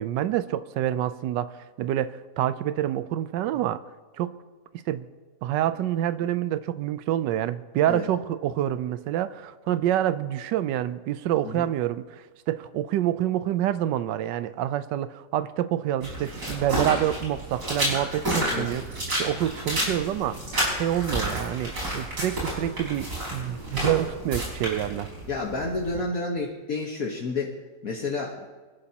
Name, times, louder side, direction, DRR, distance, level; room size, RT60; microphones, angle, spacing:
voice 1, 0.0-3.8 4.2-4.3 4.9-5.1 5.4-20.4 20.8-25.1, right 12 dB, 90° right, 13 dB, 1.3 m, -27 dB
sound 1, 16.0-26.0, right 1 dB, 65° right, 5.5 m, -30 dB
voice 2, 25.3-28.5, left 3 dB, 55° left, -1 dB, 1.7 m, -30 dB
25.0 x 11.5 x 2.9 m, 1.3 s
omnidirectional pair, 1.9 m